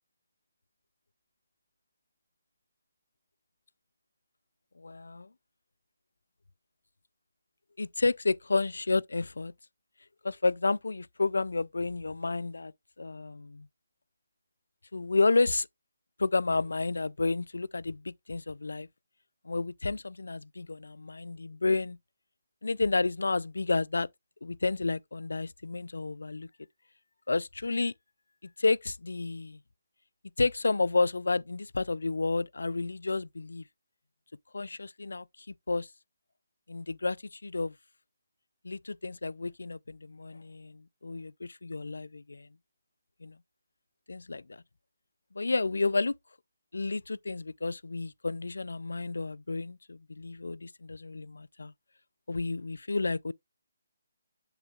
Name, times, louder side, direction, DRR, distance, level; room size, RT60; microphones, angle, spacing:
voice 1, 4.8-5.3 7.8-9.5 10.2-12.7 13.0-13.7 14.9-15.7 16.2-18.9 19.5-22.0 22.6-24.1 24.4-26.5 27.3-27.9 28.6-29.6 30.4-33.6 34.5-35.2 35.7-35.9 36.7-37.7 38.6-42.5 43.2-43.4 44.1-44.6 45.3-46.1 46.7-51.7 52.3-53.3, left 3 dB, 85° left, 0.3 m, -31 dB
7.9 x 6.4 x 2.3 m
figure-of-eight pair, 150°, 0 cm